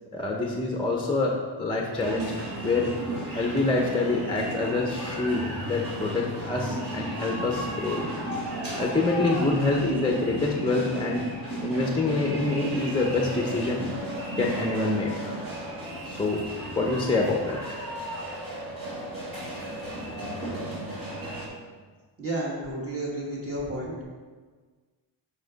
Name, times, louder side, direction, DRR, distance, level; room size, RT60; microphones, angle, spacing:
voice 1, 0.1-2.3 2.6-2.9 3.3-8.0 8.8-11.2 11.6-13.8 14.4-15.4 16.0-16.4 16.8-17.8, left 2 dB, 10° left, 0 dB, 0.5 m, -26 dB
sound 1, 1.9-21.5, right 1 dB, 50° right, 2.2 m, -34 dB
voice 2, 22.2-23.9, right 1 dB, 30° right, -4 dB, 1.2 m, -31 dB
7.3 x 5.0 x 3.9 m, 1.5 s
wide cardioid pair, 175°, 46 cm